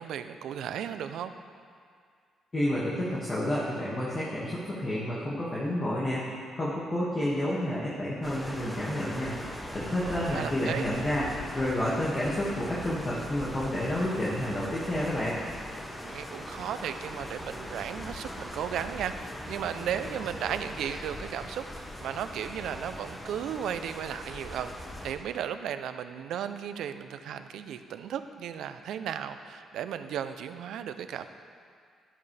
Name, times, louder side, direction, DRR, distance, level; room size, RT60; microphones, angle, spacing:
voice 1, 0.0-1.3 10.0-10.9 15.9-24.7 25.0-31.3, right 9 dB, 80° right, 10 dB, 0.5 m, -35 dB
voice 2, 2.5-9.3 9.7-11.3 11.5-15.4, left 1 dB, 30° left, -8 dB, 2.0 m, -30 dB
sound 1, 8.2-25.1, left 1 dB, 10° left, 1.4 m, -40 dB
12.0 x 11.0 x 3.4 m, 2.1 s
cardioid pair, 90°, 0 cm